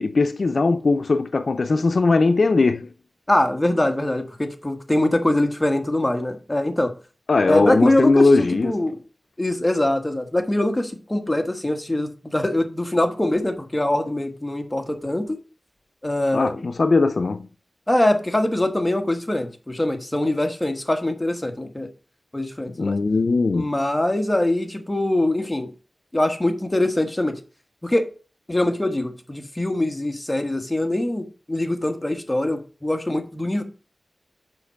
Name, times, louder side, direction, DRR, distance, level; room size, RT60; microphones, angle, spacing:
voice 1, 0.0-2.9 7.3-8.8 16.3-17.4 22.8-23.7, left 3 dB, 70° left, 0.5 m, -19 dB
voice 2, 3.3-6.9 7.5-9.0 9.4-15.4 16.0-16.7 17.9-21.9 22.3-23.0 23.5-25.7 26.1-27.4 27.8-28.1 28.5-33.6, left 1 dB, 20° left, 1.4 m, -23 dB
7.0 x 5.2 x 5.7 m
wide cardioid pair, 80°, 0 cm